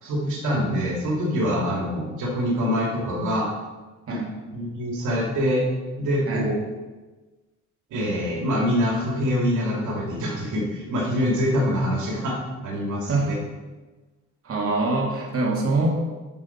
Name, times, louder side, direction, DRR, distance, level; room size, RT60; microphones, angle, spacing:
voice 1, 0.0-3.5 4.1-4.2 4.5-5.6 6.0-6.6 7.9-13.3, equal, 80° right, -2 dB, 2.7 m, -25 dB
voice 2, 14.4-15.9, right 2 dB, 50° right, -3 dB, 2.7 m, -24 dB
13.5 x 6.3 x 4.6 m, 1.2 s
cardioid pair, 90°, 30 cm